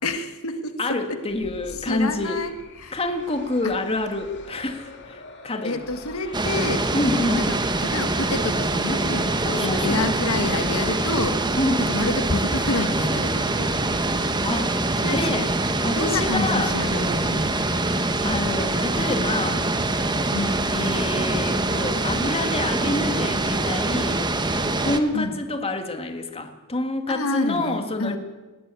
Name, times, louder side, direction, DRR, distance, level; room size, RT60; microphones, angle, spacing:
voice 1, 0.0-1.2 1.8-3.0 3.6-3.8 5.6-6.9 7.3-9.4 9.6-11.4 11.8-13.7 15.0-15.5 15.9-17.5 20.3-20.7 25.1-25.4 27.1-28.2, left 2 dB, 85° left, 8 dB, 1.7 m, -28 dB
voice 2, 0.8-2.4 2.9-5.9 6.9-7.5 9.4-10.0 11.6-11.9 14.4-14.8 15.0-15.5 15.8-16.8 18.2-19.7 20.7-24.3 24.8-28.2, left 2 dB, 30° left, 6 dB, 2.1 m, -27 dB
sound 1, 1.3-8.5, left 3 dB, 55° left, 3.1 m, -44 dB
sound 2, 6.3-25.0, right 2 dB, 20° right, 1.3 m, -24 dB
sound 3, 10.9-22.0, equal, 40° right, 7.9 m, -38 dB
20.5 x 16.5 x 8.4 m, 1.2 s
head